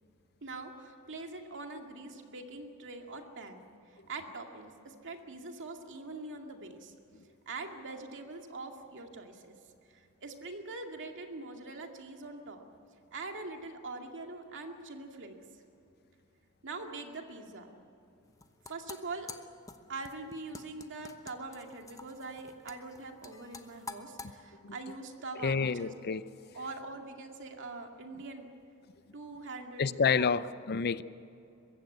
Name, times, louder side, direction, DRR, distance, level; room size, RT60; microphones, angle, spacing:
voice 1, 0.4-3.6 3.9-6.9 7.5-9.6 9.9-12.7 13.1-15.6 16.6-17.7 18.7-19.3 19.9-25.9 26.5-28.5 29.1-30.3, right 3 dB, 60° right, 3 dB, 2.2 m, -43 dB
sound 1, 18.2-24.3, left 3 dB, 15° left, 1.0 m, -48 dB
voice 2, 25.4-26.2 29.8-31.0, left 5 dB, 50° left, 16 dB, 0.5 m, -29 dB
22.5 x 16.0 x 9.5 m, 2.7 s
head